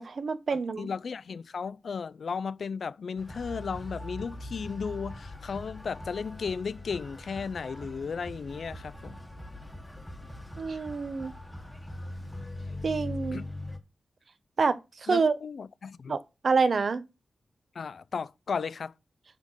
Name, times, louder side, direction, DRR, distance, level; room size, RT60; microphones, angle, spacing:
voice 1, 0.0-0.9 10.6-11.3 12.8-13.4 14.6-15.3 16.1-17.0, right 4 dB, 50° right, 0.7 m, -27 dB
voice 2, 0.5-9.2 13.3-13.5 15.1-16.2 17.8-18.9, left 5 dB, 60° left, 0.4 m, -35 dB
sound 1, 3.2-13.8, left 1 dB, 5° left, 1.2 m, -41 dB
10.0 x 3.7 x 6.4 m
wide cardioid pair, 170°, 0 cm